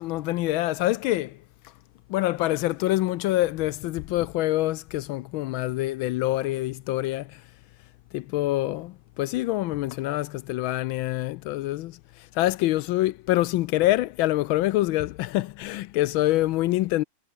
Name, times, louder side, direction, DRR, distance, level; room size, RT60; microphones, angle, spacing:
voice 1, 0.0-1.4 2.1-7.3 8.1-12.0 12.4-17.0, left 16 dB, 80° left, 1.4 m, -25 dB
omnidirectional pair, 2.2 m